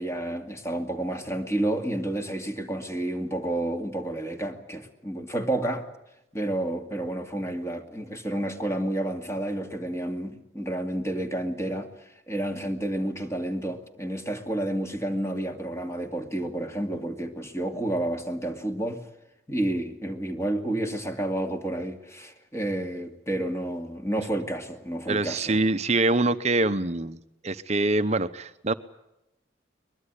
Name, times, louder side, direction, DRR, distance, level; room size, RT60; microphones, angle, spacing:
voice 1, 0.0-5.9 6.3-11.9 12.3-19.0 19.5-25.6, right 1 dB, 15° left, 2.3 m, -30 dB
voice 2, 25.1-27.2 27.4-28.7, right 2 dB, 35° right, 0.9 m, -24 dB
23.0 x 22.0 x 8.2 m
head